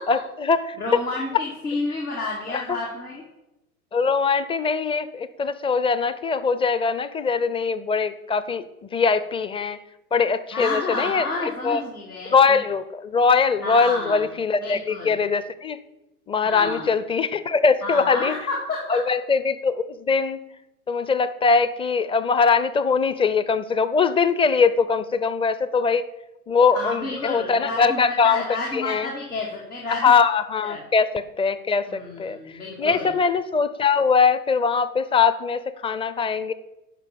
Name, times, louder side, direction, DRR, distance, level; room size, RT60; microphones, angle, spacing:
voice 1, 0.1-1.0 2.5-2.8 3.9-9.8 10.1-11.8 12.3-15.8 16.3-18.3 18.9-20.4 20.9-26.0 26.5-28.4 28.7-29.1 30.0-36.5, left 5 dB, 15° left, 14 dB, 0.5 m, -22 dB
voice 2, 0.8-3.2 10.5-12.6 13.6-14.2 14.6-15.2 16.4-16.9 17.8-19.0 26.7-30.1 30.7-30.8 31.9-33.1, left 2 dB, 90° left, -3 dB, 2.2 m, -30 dB
11.0 x 5.5 x 6.8 m, 0.94 s
figure-of-eight pair, 85°, 44 cm